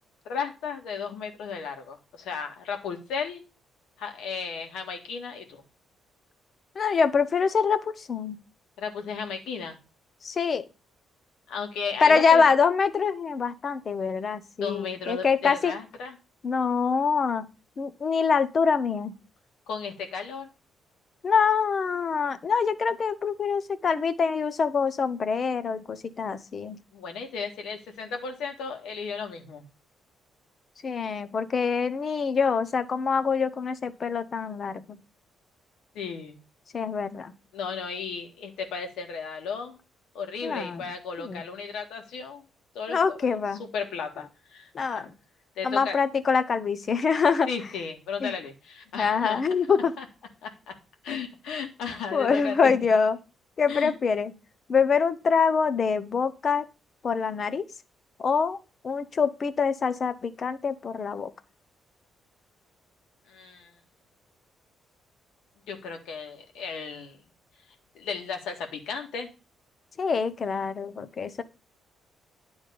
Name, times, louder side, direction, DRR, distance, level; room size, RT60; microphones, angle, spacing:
voice 1, 0.3-3.4 4.0-5.6 8.8-9.8 11.5-12.5 14.6-16.1 19.7-20.5 26.9-29.6 35.9-36.4 37.5-39.8 40.1-42.4 42.7-43.4 43.7-44.7 44.9-45.1 45.6-46.0 47.5-49.4 50.0-50.1 50.4-50.7 51.0-52.8 53.7-53.9 63.3-63.7 65.7-67.2 67.9-69.3, left 5 dB, 85° left, 4 dB, 1.9 m, -35 dB
voice 2, 6.7-8.4 10.2-10.6 12.0-15.7 16.4-17.5 17.8-19.1 21.2-26.8 30.8-35.0 36.7-37.3 40.4-40.8 41.2-41.4 42.9-43.6 44.7-45.1 45.6-47.5 48.2-48.3 48.9-49.9 52.1-53.2 53.6-54.3 54.7-56.6 57.0-57.6 58.2-58.6 58.8-61.3 70.0-71.4, left 5 dB, 45° left, 12 dB, 0.9 m, -25 dB
10.0 x 3.6 x 6.9 m, 0.31 s
cardioid pair, 90°, 0 cm